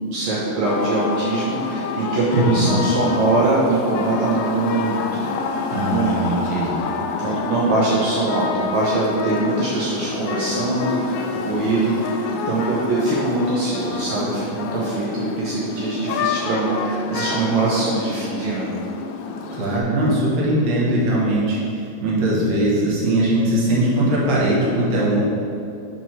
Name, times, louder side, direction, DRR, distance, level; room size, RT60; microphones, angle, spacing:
voice 1, 0.0-5.3 5.7-6.2 7.2-12.2 12.5-18.7, right 2 dB, 75° right, -6 dB, 1.7 m, -22 dB
sound 1, 0.6-19.8, left 5 dB, 80° left, 2.2 m, -28 dB
voice 2, 2.3-2.8 5.7-6.8 19.5-25.3, right 1 dB, 55° right, -5 dB, 2.1 m, -20 dB
5.9 x 4.6 x 5.5 m, 2.6 s
omnidirectional pair, 4.4 m